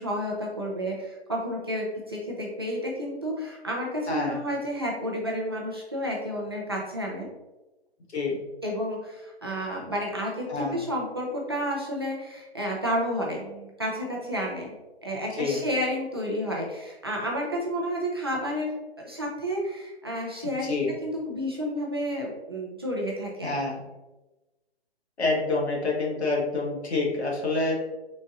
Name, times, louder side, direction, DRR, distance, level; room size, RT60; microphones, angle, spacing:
voice 1, 0.0-7.3 8.6-14.7 15.0-18.7 19.0-23.5, equal, 25° right, -3 dB, 0.3 m, -31 dB
voice 2, 4.1-4.4 8.1-8.4 10.5-10.8 15.3-15.6 20.4-20.9 23.4-23.8 25.2-27.7, left 3 dB, 80° left, -2 dB, 1.4 m, -27 dB
3.9 x 2.5 x 3.5 m, 1.1 s
hypercardioid pair, 155°, 32 cm